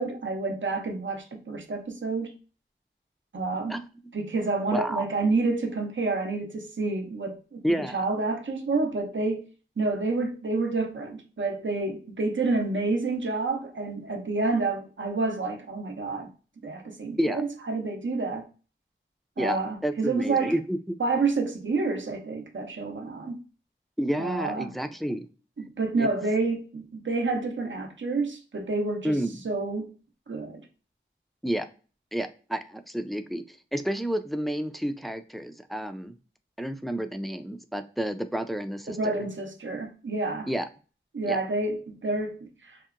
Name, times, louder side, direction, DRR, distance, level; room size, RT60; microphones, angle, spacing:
voice 1, 0.0-2.3 3.3-3.8 4.1-9.5 9.8-16.3 16.6-18.5 19.4-20.6 21.0-23.4 24.2-24.8 25.6-29.9 30.3-30.6 38.9-40.5 41.1-42.8, right 3 dB, 70° right, 0.6 m, -29 dB
voice 2, 4.7-5.0 7.6-8.0 17.2-17.4 19.4-20.8 24.0-25.2 26.0-26.1 29.0-29.4 31.4-31.7 32.1-33.4 33.7-36.1 36.6-39.1 40.5-40.7 41.3-41.4, equal, ahead, 0.3 m, -30 dB
2.8 x 2.1 x 2.4 m
wide cardioid pair, 40°, 21 cm